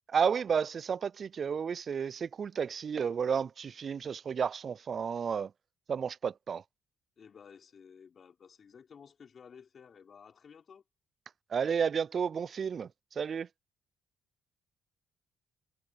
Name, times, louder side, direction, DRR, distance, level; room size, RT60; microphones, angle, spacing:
voice 1, 0.1-5.5 5.9-6.6 11.5-12.9 13.2-13.5, right 6 dB, 50° right, 0.3 m, -32 dB
voice 2, 7.2-10.8, left 6 dB, 50° left, 4.3 m, -54 dB
supercardioid pair, 60°, 0 cm